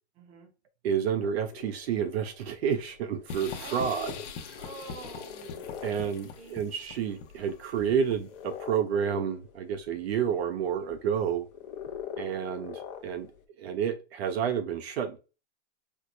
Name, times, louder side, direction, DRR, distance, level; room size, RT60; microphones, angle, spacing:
voice 1, 0.2-0.5 3.6-4.2 4.5-6.7, right 5 dB, 20° right, 0.6 m, -47 dB
voice 2, 0.8-4.1 5.8-11.5 12.2-13.3 13.6-15.2, right 8 dB, 60° right, 0.5 m, -30 dB
sound 1, 1.2-13.4, left 8 dB, 35° left, 0.6 m, -45 dB
sound 2, 3.3-8.4, left 6 dB, 80° left, 0.8 m, -42 dB
4.4 x 2.1 x 2.5 m
supercardioid pair, 160°, 35 cm